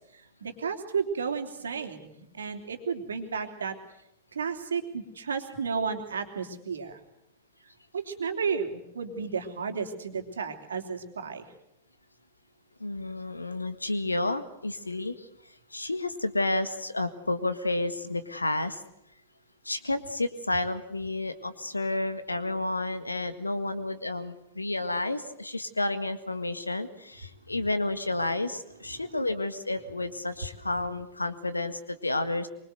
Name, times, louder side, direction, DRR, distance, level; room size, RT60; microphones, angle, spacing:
voice 1, 0.1-3.8 4.3-7.0 7.9-11.4, right 5 dB, 70° right, 5 dB, 3.2 m, -33 dB
voice 2, 12.8-15.3 15.7-18.8 19.6-32.5, left 2 dB, 80° left, 12 dB, 1.8 m, -31 dB
24.5 x 24.0 x 8.0 m, 0.79 s
figure-of-eight pair, 90°, 0 cm